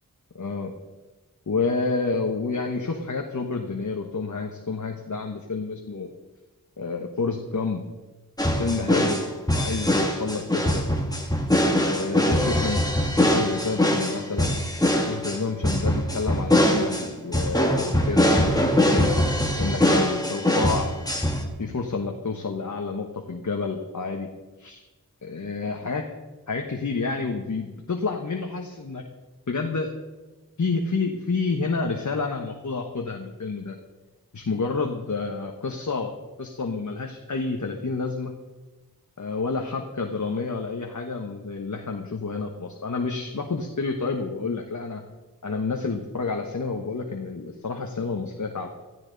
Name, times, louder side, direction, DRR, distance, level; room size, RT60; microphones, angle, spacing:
voice 1, 0.4-0.7 1.5-6.1 6.8-7.8 8.6-9.2 9.5-10.8 11.9-12.8 13.1-14.5 15.1-19.1 19.6-21.0 21.6-24.3 24.6-24.8 25.2-26.1 26.5-29.0 29.5-29.9 30.6-33.7 34.3-36.1 36.4-38.3 39.2-45.0 45.4-48.7, left 4 dB, 60° left, 2 dB, 1.3 m, -29 dB
sound 1, 8.4-21.4, left 1 dB, 10° left, 2.3 m, -22 dB
16.5 x 14.5 x 4.1 m, 1.2 s
wide cardioid pair, 55°, 34 cm